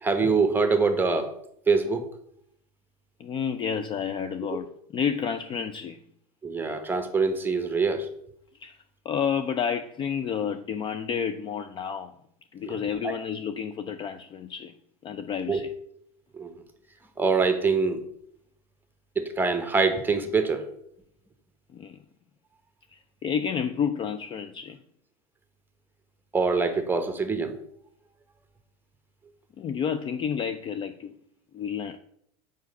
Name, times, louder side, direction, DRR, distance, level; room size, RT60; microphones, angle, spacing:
voice 1, 0.0-1.3 1.7-2.1 6.4-8.1 12.6-12.7 13.0-13.1 15.5-15.6 16.3-16.5 17.2-18.0 19.2-20.7 26.3-27.5, right 4 dB, 10° right, 8 dB, 1.0 m, -24 dB
voice 2, 3.2-6.0 8.6-8.8 9.1-12.1 12.5-14.7 15.0-15.7 21.7-22.0 22.9-24.8 29.6-31.1 31.5-32.0, left 7 dB, 25° left, 9 dB, 0.4 m, -30 dB
6.2 x 5.0 x 5.3 m, 0.72 s
hypercardioid pair, 115°, 19 cm